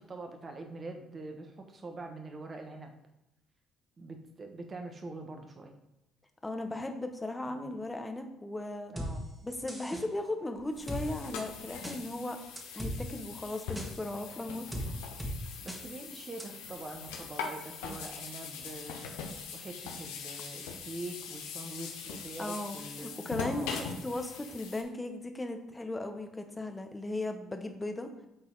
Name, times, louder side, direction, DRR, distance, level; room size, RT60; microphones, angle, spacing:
voice 1, 0.0-2.9 4.0-5.7 7.5-7.7 8.9-9.2 15.6-23.7, right 2 dB, 35° right, 4 dB, 1.2 m, -44 dB
voice 2, 6.4-8.9 9.4-12.4 12.7-14.7 22.4-28.1, left 2 dB, 15° left, 6 dB, 1.0 m, -37 dB
sound 1, 9.0-9.1 9.7-10.0 10.9-11.0 11.8-12.0 12.6-13.0 13.8-13.9 14.7-14.9 15.2-15.3 15.7-15.8 16.4-16.5, equal, 10° right, 1.8 m, -36 dB
sound 2, 10.6-24.8, left 5 dB, 75° left, 0.8 m, -42 dB
7.9 x 4.0 x 3.9 m, 0.92 s
hypercardioid pair, 55°, 0 cm